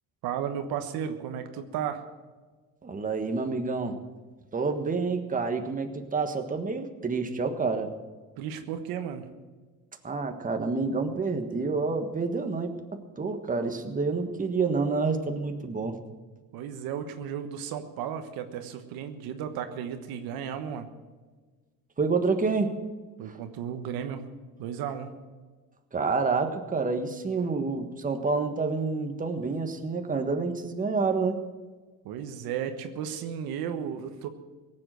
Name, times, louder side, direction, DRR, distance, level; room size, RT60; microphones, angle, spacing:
voice 1, 0.2-2.0 8.4-9.3 16.5-20.9 23.2-24.3 24.6-25.1 32.0-34.3, right 8 dB, 80° right, 7 dB, 1.3 m, -34 dB
voice 2, 2.8-4.0 4.5-7.9 10.0-16.0 22.0-22.8 23.2-23.4 25.9-31.4, right 4 dB, 25° right, 6 dB, 1.5 m, -28 dB
18.0 x 7.8 x 7.7 m, 1.3 s
cardioid pair, 100°, 35 cm